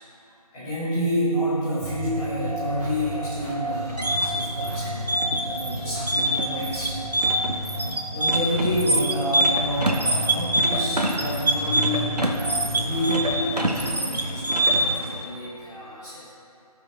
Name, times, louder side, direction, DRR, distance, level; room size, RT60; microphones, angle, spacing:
voice 1, 0.5-7.2 7.6-7.9 8.1-12.2 12.6-16.3, equal, 5° left, -14 dB, 0.9 m, -29 dB
sound 1, 1.8-15.4, equal, 20° right, 1.4 m, -39 dB
sound 2, 1.8-13.7, right 1 dB, 60° right, 0.8 m, -34 dB
sound 3, 3.7-15.0, right 1 dB, 80° right, 1.0 m, -24 dB
16.5 x 5.7 x 2.4 m, 2.7 s
figure-of-eight pair, 160°, 20 cm